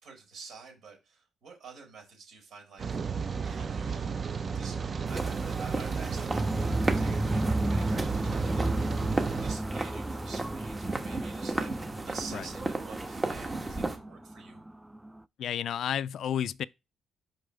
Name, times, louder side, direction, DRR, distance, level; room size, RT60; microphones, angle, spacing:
voice 1, 0.0-3.0 3.4-4.3 4.5-9.0 9.4-11.7 12.0-14.6, right 5 dB, 65° right, 4.2 m, -48 dB
Rain, 2.8-9.6, right 5 dB, 40° right, 0.7 m, -33 dB
sound 1, 5.1-14.0, right 2 dB, 25° right, 1.2 m, -35 dB
sound 2, 6.3-15.2, right 1 dB, 10° right, 0.3 m, -33 dB
voice 2, 15.4-16.6, left 9 dB, 70° left, 0.3 m, -31 dB
5.9 x 5.3 x 3.3 m
cardioid pair, 90°, 0 cm